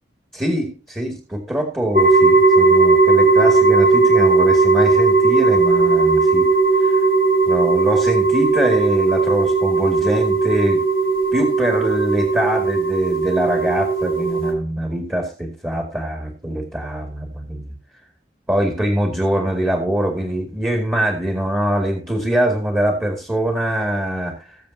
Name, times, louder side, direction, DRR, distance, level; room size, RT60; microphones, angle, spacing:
voice 1, 0.3-6.5 6.8-7.0 7.5-10.8 11.3-17.7 18.5-24.6, equal, 15° right, 2 dB, 2.2 m, -23 dB
sound 1, 1.9-14.5, right 4 dB, 55° right, 2.6 m, -16 dB
20.5 x 7.2 x 2.8 m, 0.35 s
head